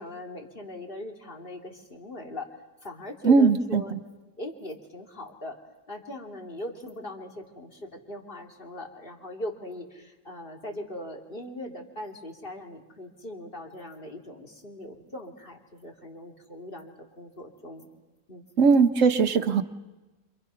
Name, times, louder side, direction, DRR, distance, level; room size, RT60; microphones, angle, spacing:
voice 1, 0.0-2.5 2.8-3.9 4.4-5.6 5.9-17.9 18.3-18.4, left 1 dB, 35° left, 1 dB, 3.0 m, -40 dB
voice 2, 3.2-4.0 18.6-19.6, right 5 dB, 55° right, 7 dB, 1.4 m, -20 dB
29.5 x 27.0 x 5.7 m, 1.1 s
omnidirectional pair, 1.6 m